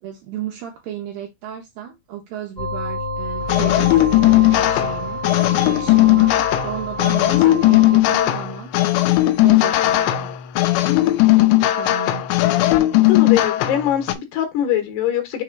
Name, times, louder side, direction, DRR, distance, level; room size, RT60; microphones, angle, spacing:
voice 1, 0.0-4.0 4.3-8.7 9.2-10.3 11.6-12.2, right 10 dB, 80° right, 2.2 m, -34 dB
sound 1, 2.6-8.0, equal, 30° left, 1.2 m, -29 dB
sound 2, 3.5-14.1, left 16 dB, 90° left, 2.9 m, -17 dB
voice 2, 13.0-15.4, left 11 dB, 70° left, 3.1 m, -22 dB
6.6 x 3.2 x 4.5 m
omnidirectional pair, 5.0 m